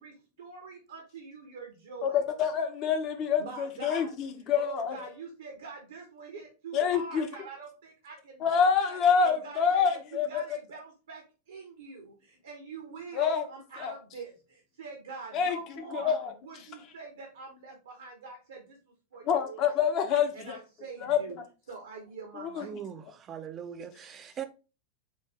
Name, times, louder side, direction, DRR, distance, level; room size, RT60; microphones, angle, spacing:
voice 1, 0.0-2.2 3.4-4.1 4.5-8.6 8.9-9.0 9.2-16.1 16.4-19.7 20.3-21.4 21.7-22.7, right 4 dB, 65° right, 0.9 m, -44 dB
voice 2, 2.0-5.0 6.7-7.3 8.4-10.6 13.1-13.4 13.8-13.9 15.3-15.6 15.9-16.3 19.3-20.6 21.0-21.2 22.4-22.7, left 7 dB, 35° left, 0.8 m, -27 dB
voice 3, 22.6-24.4, right 9 dB, 25° right, 0.5 m, -40 dB
4.4 x 2.6 x 3.4 m
figure-of-eight pair, 90°, 0 cm